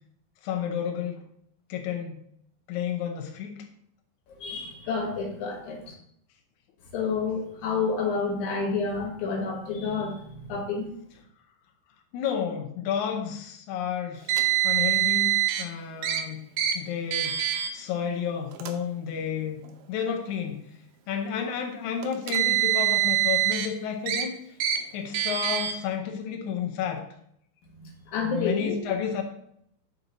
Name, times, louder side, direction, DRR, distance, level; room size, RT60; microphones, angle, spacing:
voice 1, 0.4-1.2 1.7-2.2 2.7-3.7 12.1-16.4 16.7-17.4 17.7-19.6 19.9-20.6 21.1-24.4 24.9-27.0 28.3-29.2, left 8 dB, 85° left, 3 dB, 1.7 m, -31 dB
voice 2, 4.4-5.9 6.9-10.9 27.7-28.8, left 4 dB, 60° left, 0 dB, 2.4 m, -29 dB
Car, 14.3-15.6 16.0-16.2 16.6-16.7 17.1-17.7 18.5-18.7 19.7-19.8 22.0-23.7 24.1-24.2 24.6-24.8 25.1-25.7, right 13 dB, 80° right, 2.4 m, -24 dB
7.1 x 4.1 x 3.9 m, 0.71 s
omnidirectional pair, 4.3 m